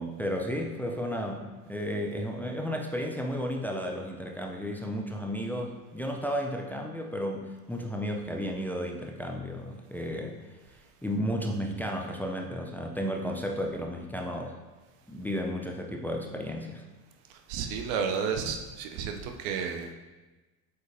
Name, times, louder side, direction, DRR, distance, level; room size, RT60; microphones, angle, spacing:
voice 1, 0.0-10.4 11.0-14.5 15.1-16.8, equal, 5° left, 1 dB, 0.6 m, -33 dB
voice 2, 17.3-19.9, right 6 dB, 55° right, 5 dB, 0.8 m, -32 dB
7.7 x 5.3 x 2.8 m, 1.2 s
figure-of-eight pair, 65°, 45 cm